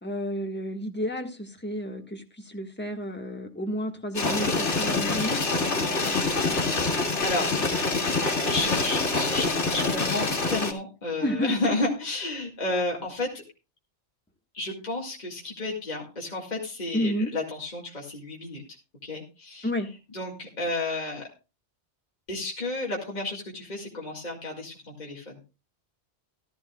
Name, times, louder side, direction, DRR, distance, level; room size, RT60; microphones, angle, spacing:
voice 1, 0.0-5.4 11.2-11.5 16.9-17.3 19.6-19.9, equal, 10° left, 3 dB, 1.6 m, -30 dB
sound 1, 4.1-10.7, left 3 dB, 85° left, 2.5 m, -26 dB
voice 2, 5.8-6.1 6.6-7.5 8.4-13.4 14.5-18.6 19.0-19.7 20.1-21.3 22.3-25.4, left 2 dB, 40° left, -1 dB, 2.3 m, -32 dB
15.5 x 12.5 x 2.4 m, 0.29 s
omnidirectional pair, 1.2 m